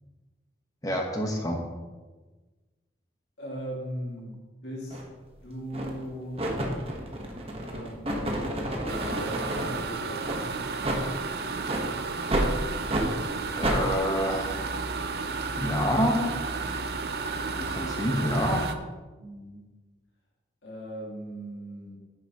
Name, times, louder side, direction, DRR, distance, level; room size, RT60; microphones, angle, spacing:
voice 1, 0.8-1.6 13.5-14.6 15.6-16.3 17.6-18.6, equal, 20° left, 1 dB, 1.3 m, -27 dB
voice 2, 3.4-4.4 4.6-5.0 5.4-6.5 7.6-10.7 17.8-17.9 19.2-19.7 20.6-22.0, equal, 75° left, -4 dB, 2.3 m, -39 dB
sound 1, 4.9-5.1 5.7-6.0 6.4-9.8 10.2-10.4 10.8-11.0 11.6-11.9 12.3-12.5 12.9-13.1 13.6-13.8, right 1 dB, 35° right, 1.2 m, -29 dB
sound 2, 8.9-18.8, right 4 dB, 60° right, 0.6 m, -32 dB
10.0 x 9.6 x 3.0 m, 1.3 s
head